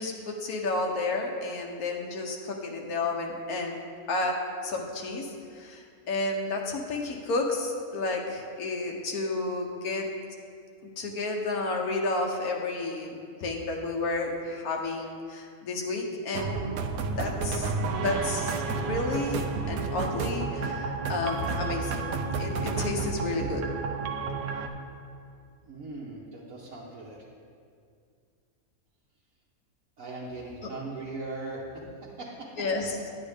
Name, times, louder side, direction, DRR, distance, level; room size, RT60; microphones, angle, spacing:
voice 1, 0.0-3.8 4.1-10.1 11.0-16.8 17.2-19.4 19.7-22.1 22.4-23.6 32.6-33.0, left 2 dB, 90° left, 1 dB, 1.5 m, -31 dB
sound 1, 16.3-24.7, right 4 dB, 90° right, 1.2 m, -31 dB
voice 2, 25.6-27.2 30.0-31.8 32.2-32.5, right 2 dB, 65° right, -5 dB, 1.4 m, -39 dB
10.0 x 9.3 x 3.5 m, 2.3 s
omnidirectional pair, 1.5 m